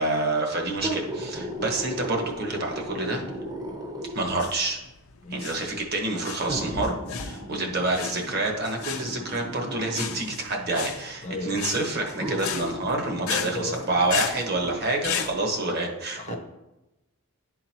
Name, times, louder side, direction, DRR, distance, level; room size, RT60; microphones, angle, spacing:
voice 1, 0.0-3.2 4.1-4.8 5.3-16.4, right 2 dB, 50° right, 1 dB, 1.1 m, -28 dB
sound 1, 0.7-4.4 5.3-5.4 6.5-10.4 11.4-11.5 12.2-14.8 15.3-15.4, right 1 dB, 15° right, 0.7 m, -36 dB
sound 2, 4.3-15.3, left 8 dB, 80° left, 0.6 m, -35 dB
voice 2, 11.2-11.7 13.2-13.8 16.2-16.4, left 2 dB, 30° left, 5 dB, 0.5 m, -34 dB
11.0 x 3.8 x 2.9 m, 0.98 s
head